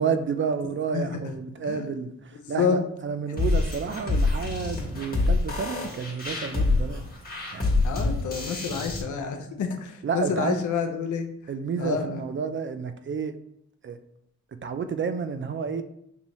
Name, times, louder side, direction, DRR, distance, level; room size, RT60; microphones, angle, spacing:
voice 1, 0.0-2.1 2.5-7.0 7.5-7.9 10.0-10.6 11.5-13.4 13.8-14.0 14.6-15.8, right 6 dB, 40° right, 9 dB, 0.4 m, -30 dB
voice 2, 0.9-1.3 1.7-2.0 2.4-2.8 7.8-11.3 11.8-12.3, left 6 dB, 80° left, 6 dB, 0.6 m, -28 dB
sound 1, 3.4-9.0, left 3 dB, 30° left, 1.4 m, -26 dB
5.5 x 2.6 x 3.0 m, 0.76 s
cardioid pair, 70°, 29 cm